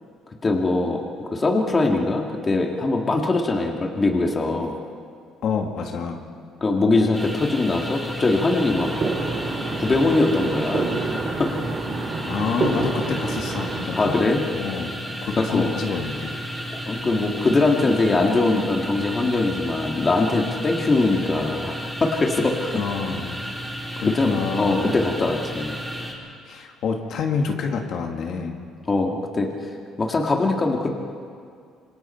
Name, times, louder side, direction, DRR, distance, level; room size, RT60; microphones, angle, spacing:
voice 1, 0.4-1.0 1.3-4.7 6.6-8.9 9.7-10.9 11.4-11.5 13.9-14.4 15.4-15.7 16.9-21.8 22.0-22.8 24.1-25.7 28.9-29.7 30.0-30.9, left 3 dB, 25° left, 1 dB, 2.2 m, -22 dB
voice 2, 5.4-6.2 12.2-14.2 14.5-15.0 15.2-16.4 22.8-23.4 24.0-24.8 26.4-28.6, left 5 dB, 55° left, 2 dB, 2.2 m, -27 dB
sound 1, 7.1-26.1, equal, ahead, 4.3 m, -33 dB
sound 2, 8.7-13.9, right 3 dB, 35° right, 3.2 m, -28 dB
27.0 x 26.0 x 4.5 m, 2.3 s
cardioid pair, 135°, 0 cm